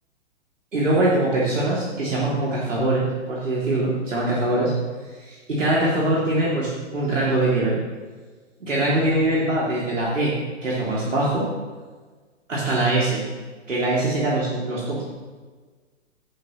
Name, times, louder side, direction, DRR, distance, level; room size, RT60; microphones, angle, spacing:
voice 1, 0.7-4.7 5.2-7.8 8.6-10.3 10.6-11.5 12.5-13.2 13.7-15.0, right 2 dB, 90° right, -6 dB, 3.0 m, -22 dB
16.0 x 8.0 x 3.2 m, 1.4 s
hypercardioid pair, 125°, 37 cm